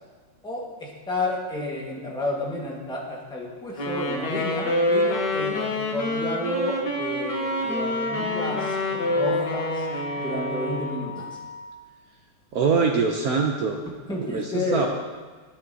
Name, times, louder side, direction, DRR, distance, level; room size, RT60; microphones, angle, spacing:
voice 1, 0.4-9.9 10.2-11.4 14.1-14.9, left 1 dB, 5° left, -4 dB, 1.1 m, -31 dB
Wind instrument woodwind instrument, 3.8-11.2, left 1 dB, 55° left, 1.8 m, -27 dB
Wind instrument woodwind instrument 2, 7.3-11.7, left 2 dB, 75° left, 0.5 m, -35 dB
voice 2, 12.5-13.8 14.2-14.9, right 5 dB, 75° right, 2 dB, 0.8 m, -23 dB
11.0 x 8.7 x 2.8 m, 1.4 s
omnidirectional pair, 2.3 m